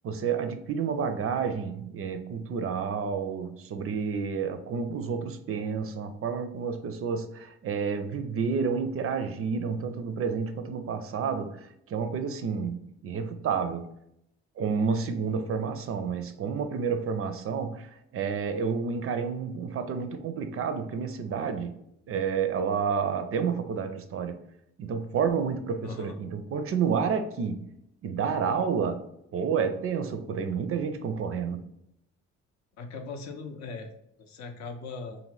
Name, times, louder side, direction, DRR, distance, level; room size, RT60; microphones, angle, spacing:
voice 1, 0.0-12.8 13.0-13.9 14.6-21.8 22.1-24.4 24.8-27.7 28.0-29.0 29.3-31.7, right 6 dB, 45° right, 8 dB, 0.4 m, -30 dB
voice 2, 25.8-26.2 32.8-33.9 34.2-35.2, left 4 dB, 60° left, 5 dB, 0.6 m, -39 dB
2.6 x 2.5 x 3.1 m, 0.78 s
supercardioid pair, 60°, 32 cm